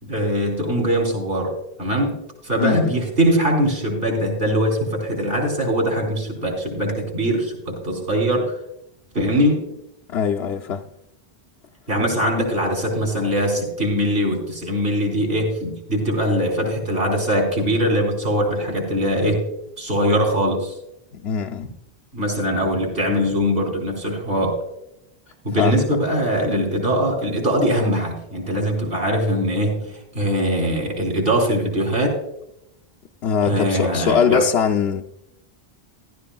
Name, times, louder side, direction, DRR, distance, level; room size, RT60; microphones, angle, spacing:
voice 1, 0.0-1.5 1.8-2.2 2.4-8.6 9.1-9.6 11.9-19.5 19.8-20.7 22.1-24.5 25.4-32.1 33.4-34.5, equal, 70° right, 4.1 m, -21 dB
voice 2, 2.6-2.9 10.1-10.9 21.2-21.6 25.6-25.8 33.2-35.0, left 7 dB, 85° left, 0.9 m, -21 dB
15.0 x 13.0 x 2.3 m
omnidirectional pair, 1.0 m